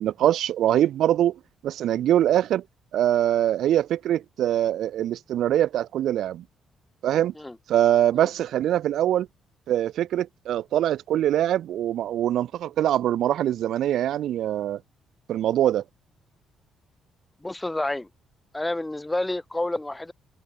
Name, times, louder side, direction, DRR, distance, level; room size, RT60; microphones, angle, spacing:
voice 1, 0.0-2.6 2.9-6.4 7.0-7.3 7.7-9.3 9.7-14.8 15.3-15.8, right 11 dB, 75° right, 2.1 m, -23 dB
voice 2, 17.4-18.1 18.5-20.1, left 2 dB, 10° left, 6.0 m, -29 dB
cardioid pair, 90°, 0 cm